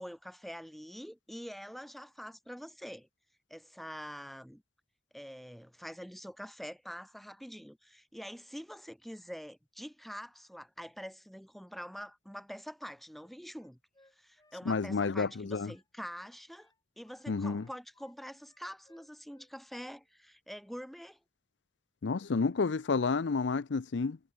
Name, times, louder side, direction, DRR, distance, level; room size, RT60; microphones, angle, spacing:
voice 1, 0.0-3.1 3.5-4.6 5.1-13.8 14.2-21.2, equal, ahead, 1.9 m, -45 dB
Wind instrument woodwind instrument, 13.1-16.3 16.6-18.2 18.4-19.5 19.8-20.1, left 2 dB, 20° left, 7.1 m, -67 dB
voice 2, 14.7-15.7 17.3-17.6 22.0-24.2, left 4 dB, 80° left, 0.6 m, -30 dB
head